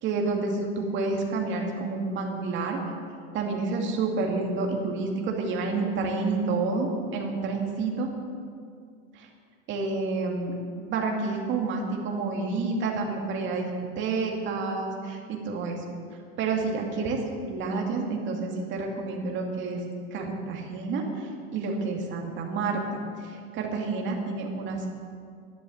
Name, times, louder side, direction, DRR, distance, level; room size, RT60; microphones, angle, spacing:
voice 1, 0.0-2.8 3.3-8.1 9.1-9.3 9.7-13.7 14.0-15.8 16.4-17.2 17.5-19.8 20.1-24.9, right 3 dB, 35° right, 0 dB, 2.4 m, -29 dB
12.0 x 11.0 x 7.2 m, 2.2 s
supercardioid pair, 145°, 31 cm